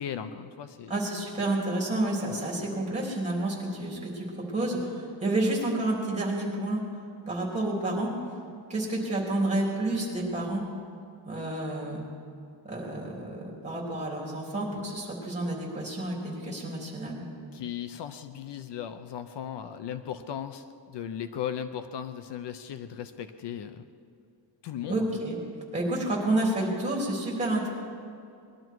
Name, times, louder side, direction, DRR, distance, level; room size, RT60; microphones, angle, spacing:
voice 1, 0.0-0.9 17.5-23.8 24.6-25.1, left 9 dB, 65° left, 10 dB, 0.7 m, -37 dB
voice 2, 0.9-6.8 7.3-8.1 8.7-10.6 11.2-12.0 12.6-17.2 24.9-25.4 25.7-27.7, right 1 dB, 15° right, -3 dB, 3.4 m, -29 dB
20.5 x 12.0 x 4.7 m, 2.5 s
wide cardioid pair, 160°, 45 cm